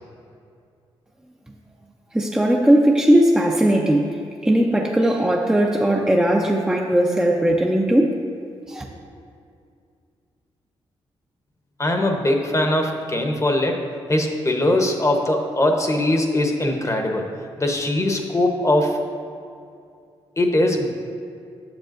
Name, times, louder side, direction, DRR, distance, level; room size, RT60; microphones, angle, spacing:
voice 1, 2.1-8.2 8.7-8.8, right 1 dB, 5° right, -1 dB, 0.6 m, -18 dB
voice 2, 11.8-13.8 14.1-17.3 17.6-19.0 20.4-20.9, left 1 dB, 25° left, 2 dB, 1.0 m, -21 dB
9.1 x 6.8 x 2.6 m, 2.4 s
supercardioid pair, 55°, 11 cm